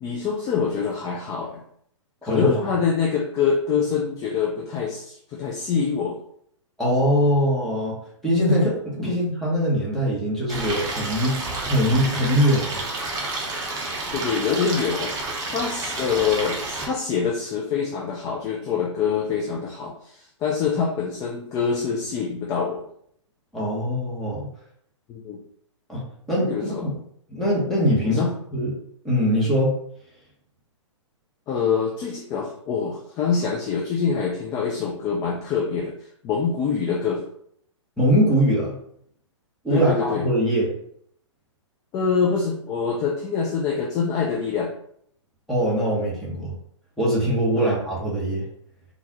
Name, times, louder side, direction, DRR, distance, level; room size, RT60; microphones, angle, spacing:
voice 1, 0.0-1.6 2.2-6.2 9.0-9.1 14.1-15.1 15.5-22.8 25.1-25.4 26.5-26.9 28.0-28.3 31.5-35.9 36.2-37.2 39.7-40.3 41.9-44.7 47.5-47.7, left 6 dB, 20° left, -1 dB, 0.4 m, -25 dB
voice 2, 2.3-2.6 6.8-8.0 8.2-12.8 23.5-24.5 25.9-26.9 27.3-28.2 28.5-28.7 29.0-29.8 38.0-38.8 39.6-40.7 45.5-46.5 47.0-48.5, equal, ahead, -7 dB, 1.2 m, -22 dB
Stream, 10.5-16.8, right 2 dB, 20° right, 0.8 m, -30 dB
3.8 x 2.5 x 2.9 m, 0.68 s
figure-of-eight pair, 120°, 16 cm